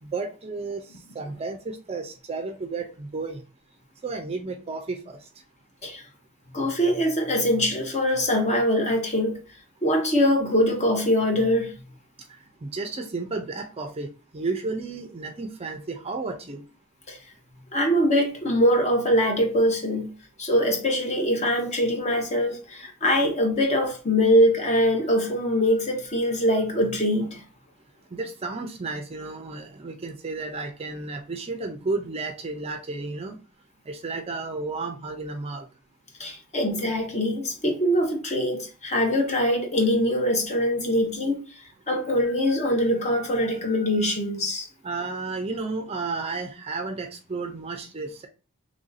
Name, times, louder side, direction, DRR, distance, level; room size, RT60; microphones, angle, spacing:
voice 1, 0.0-3.4 4.0-5.3 12.3-14.1 14.3-16.6 28.1-33.4 33.9-35.7 44.8-48.3, right 3 dB, 25° right, 0.4 m, -32 dB
voice 2, 6.5-9.4 9.8-11.7 17.1-17.2 17.7-20.1 20.4-27.4 36.2-41.4 41.9-44.7, equal, 30° left, 0.8 m, -23 dB
3.3 x 2.6 x 3.9 m
head